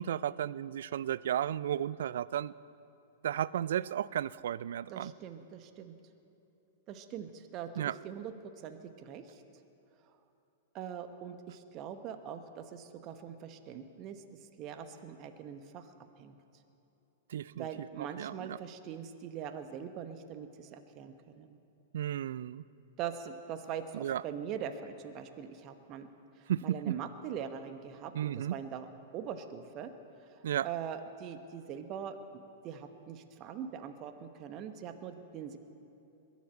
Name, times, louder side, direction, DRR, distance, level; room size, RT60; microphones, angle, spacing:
voice 1, 0.0-2.5 3.2-5.1 7.8-8.0 17.3-17.7 18.0-18.6 21.9-22.6 23.9-24.2 26.5-27.0 28.1-28.5 30.4-30.7, right 10 dB, 65° right, 19 dB, 0.3 m, -34 dB
voice 2, 4.9-5.9 6.9-8.3 8.6-9.4 10.7-14.2 14.6-16.4 17.5-21.6 23.0-26.1 26.4-28.9 29.1-29.9 30.6-32.2 32.6-35.6, right 8 dB, 40° right, 8 dB, 1.1 m, -42 dB
21.5 x 7.4 x 8.6 m, 2.8 s
hypercardioid pair, 110°, 0 cm